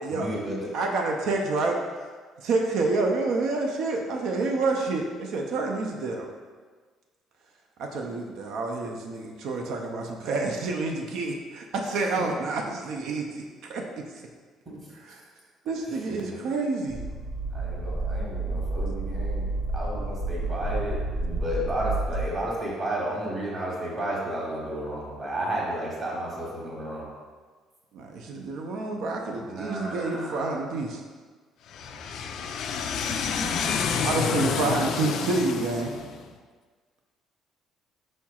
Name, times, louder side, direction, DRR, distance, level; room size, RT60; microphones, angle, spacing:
voice 1, 0.1-0.7 12.2-12.3 14.7-14.8 15.9-16.4 17.5-19.5 19.7-27.1 29.5-30.5 31.9-32.0, right 1 dB, 30° right, -4 dB, 1.2 m, -32 dB
voice 2, 0.7-1.8 2.4-6.3 7.8-13.4 13.7-13.8 14.9-15.2 15.7-17.0 27.9-31.0 34.0-35.9, right 3 dB, 70° right, 2 dB, 0.4 m, -28 dB
sound 1, 16.9-22.2, right 2 dB, 50° right, 1.3 m, -30 dB
voice 3, 31.7-36.1, left 6 dB, 60° left, 5 dB, 0.3 m, -29 dB
4.7 x 4.3 x 2.3 m, 1.5 s
cardioid pair, 145°, 0 cm